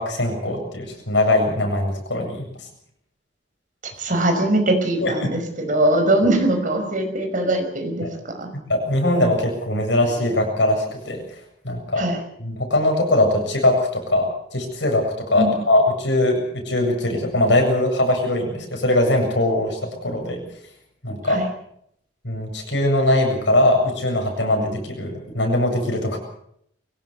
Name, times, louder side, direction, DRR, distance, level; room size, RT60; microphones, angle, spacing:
voice 1, 0.0-2.4 5.0-5.3 8.0-8.1 8.7-11.2 11.6-12.0 12.4-20.4 21.0-21.5 22.2-26.2, left 1 dB, 70° left, 3 dB, 7.8 m, -21 dB
voice 2, 4.0-8.1 8.4-8.5 12.0-12.2 15.4-15.5 21.3-21.5, right 1 dB, 45° right, 5 dB, 5.6 m, -21 dB
23.5 x 17.5 x 7.2 m, 0.71 s
head